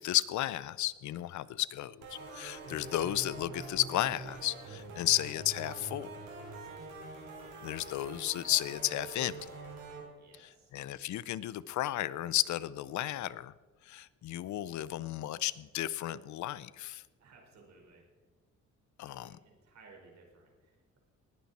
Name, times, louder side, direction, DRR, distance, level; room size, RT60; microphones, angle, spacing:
voice 1, 0.0-6.1 7.6-9.3 10.4-13.5 13.8-17.0 19.0-19.4, left 14 dB, 70° left, 19 dB, 0.6 m, -33 dB
sound 1, 2.0-10.0, right 3 dB, 85° right, 4.3 m, -45 dB
voice 2, 2.8-3.5 4.9-5.1 5.7-5.8 10.2-10.7 17.2-18.0 19.0-21.0, right 4 dB, 60° right, 0 dB, 4.7 m, -60 dB
19.5 x 9.4 x 4.2 m, 1.3 s
cardioid pair, 90°, 30 cm